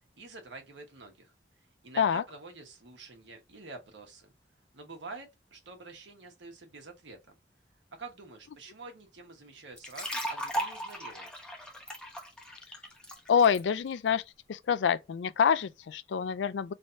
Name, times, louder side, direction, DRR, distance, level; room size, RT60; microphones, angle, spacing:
voice 1, 0.2-1.3 1.8-4.3 4.7-7.3 7.9-11.3, right 3 dB, 85° right, 1.2 m, -47 dB
sound 1, 9.8-13.6, equal, 5° left, 0.8 m, -37 dB
voice 2, 13.3-14.2 14.5-16.7, left 7 dB, 85° left, 0.4 m, -26 dB
3.3 x 2.7 x 4.3 m
head